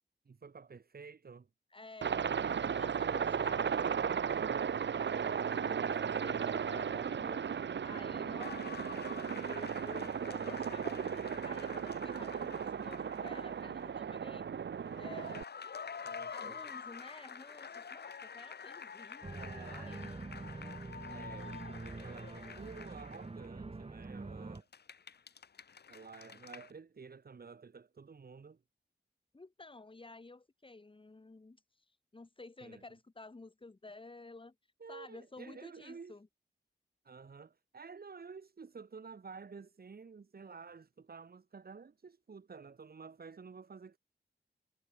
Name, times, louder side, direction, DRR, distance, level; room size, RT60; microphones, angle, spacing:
voice 1, 0.3-1.5 3.0-4.7 5.1-6.6 16.0-16.6 19.3-20.0 21.1-24.7 25.9-28.6 32.6-32.8 34.8-36.2 37.0-44.0, right 5 dB, 55° right, 5.6 m, -51 dB
voice 2, 1.7-2.3 2.7-3.9 5.4-14.5 15.0-15.4 16.3-20.2 29.3-34.5 34.9-36.3, left 3 dB, 30° left, 4.2 m, -52 dB
Aircraft, 2.0-15.4, right 7 dB, 75° right, 1.4 m, -35 dB
sound 1, 8.4-13.5 13.8-13.9 14.8-23.5 24.5-26.7, left 6 dB, 65° left, 1.8 m, -48 dB
Organ, 19.2-24.6, right 3 dB, 30° right, 7.0 m, -45 dB
wide cardioid pair, 110°, 18 cm